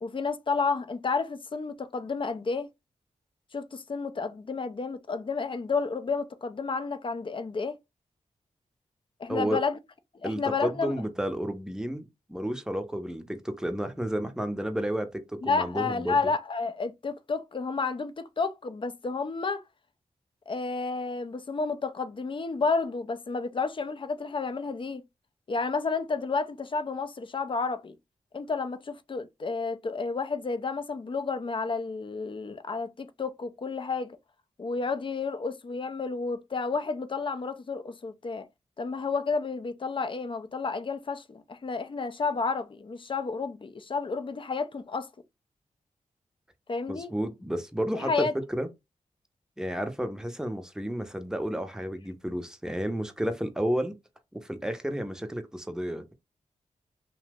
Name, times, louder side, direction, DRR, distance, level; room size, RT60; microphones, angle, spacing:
voice 1, 0.0-2.7 3.5-7.8 9.2-9.8 10.1-11.0 15.4-19.6 20.5-25.0 25.5-28.0 28.3-34.2 34.6-38.5 38.8-45.1 46.7-47.1 48.0-48.3, left 4 dB, 35° left, 0.5 m, -31 dB
voice 2, 10.2-16.2 46.9-48.7 49.6-53.9 54.3-56.1, equal, 5° right, 0.7 m, -31 dB
2.8 x 2.0 x 3.4 m
cardioid pair, 40°, 14 cm